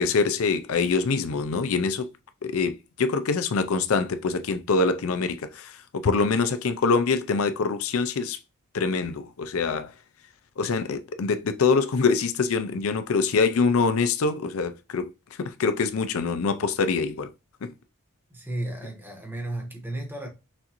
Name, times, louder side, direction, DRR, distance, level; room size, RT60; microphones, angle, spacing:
voice 1, 0.0-2.1 2.4-8.4 8.7-9.9 10.6-15.1 15.4-17.3 17.6-17.7, left 4 dB, 70° left, 0.5 m, -24 dB
voice 2, 18.3-20.3, right 1 dB, 10° right, 1.2 m, -33 dB
6.1 x 2.6 x 2.9 m
head